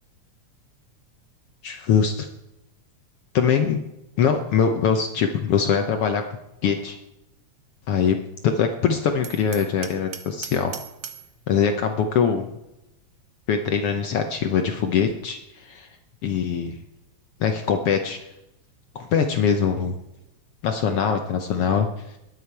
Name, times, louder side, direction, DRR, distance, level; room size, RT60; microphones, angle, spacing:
voice 1, 1.6-2.3 3.3-3.8 4.2-6.2 6.6-7.0 7.9-8.2 8.4-10.7 11.5-12.5 13.5-15.9 16.2-16.8 17.4-18.2 18.9-20.0 20.6-22.2, left 7 dB, 65° left, 5 dB, 1.5 m, -22 dB
Hammer, 9.2-11.3, right 9 dB, 60° right, 1.2 m, -38 dB
20.5 x 8.6 x 4.7 m, 0.90 s
omnidirectional pair, 3.4 m